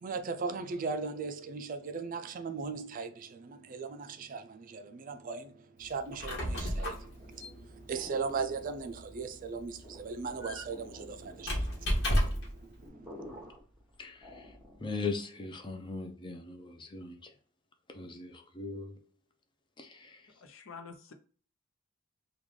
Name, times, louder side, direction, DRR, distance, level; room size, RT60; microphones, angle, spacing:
voice 1, 0.0-13.5, right 4 dB, 40° right, 0.4 m, -38 dB
Squeak, 6.0-12.6, equal, 60° left, 1.2 m, -34 dB
sound 1, 7.1-15.0, left 1 dB, 5° right, 1.0 m, -52 dB
voice 2, 14.8-17.2 17.9-19.0 19.8-20.1, left 4 dB, 25° left, 0.6 m, -39 dB
voice 3, 20.4-21.1, left 5 dB, 85° left, 0.7 m, -47 dB
3.8 x 2.3 x 3.1 m
head